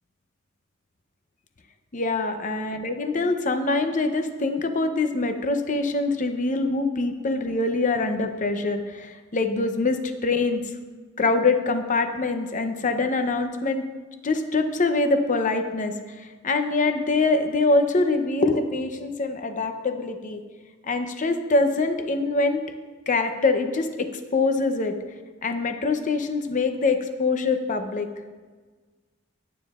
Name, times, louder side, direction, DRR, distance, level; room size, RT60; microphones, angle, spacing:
voice 1, 1.9-10.6 11.2-13.8 14.2-20.4 20.8-22.6 23.1-25.0 25.4-28.1, left 3 dB, 40° left, 7 dB, 0.7 m, -24 dB
19.5 x 9.2 x 2.4 m, 1.4 s
head